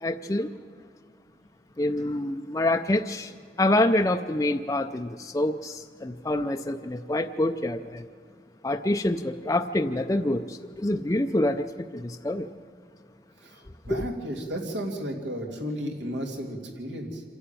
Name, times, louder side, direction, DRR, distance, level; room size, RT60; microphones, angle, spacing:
voice 1, 0.0-0.5 1.8-8.1 8.6-12.5 13.7-14.1, left 1 dB, 20° left, 6 dB, 0.5 m, -26 dB
voice 2, 13.4-17.2, equal, 80° right, 1 dB, 2.8 m, -34 dB
26.5 x 11.5 x 9.0 m, 2.1 s
head